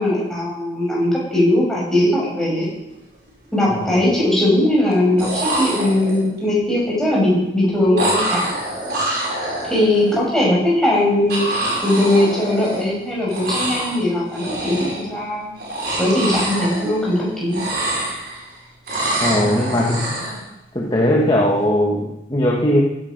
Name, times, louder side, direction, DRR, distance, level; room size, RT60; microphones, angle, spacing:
voice 1, 0.0-2.7 3.5-8.5 9.6-11.4 11.8-15.5 16.0-17.6, left 1 dB, 5° left, -5 dB, 5.9 m, -19 dB
sound 1, 2.8-2.9 3.3-3.9 4.9-5.0 5.2-6.4 8.0-10.2 11.3-13.0 13.3-14.0 14.3-15.1 15.6-17.2 17.5-18.5 18.9-20.4, right 1 dB, 55° right, 5.9 m, -25 dB
voice 2, 3.7-4.1 19.2-20.2 20.7-22.8, left 1 dB, 25° left, -2 dB, 1.3 m, -19 dB
16.0 x 10.5 x 5.2 m, 0.90 s
head